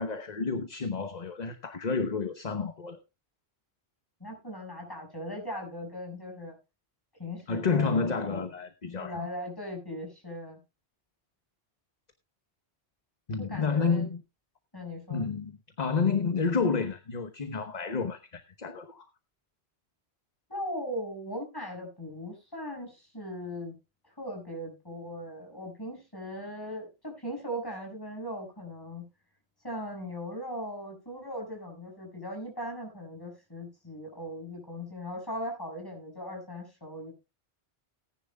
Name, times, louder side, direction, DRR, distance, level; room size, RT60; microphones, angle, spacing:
voice 1, 0.0-3.0 7.5-9.3 13.3-14.2 15.1-19.0, left 5 dB, 40° left, 1.1 m, -30 dB
voice 2, 4.2-6.6 7.2-8.5 8.9-10.6 13.4-14.1 14.7-15.2 20.5-23.7 24.2-29.1 29.6-37.1, equal, 20° left, 6.2 m, -39 dB
18.5 x 10.5 x 2.3 m
omnidirectional pair, 1.1 m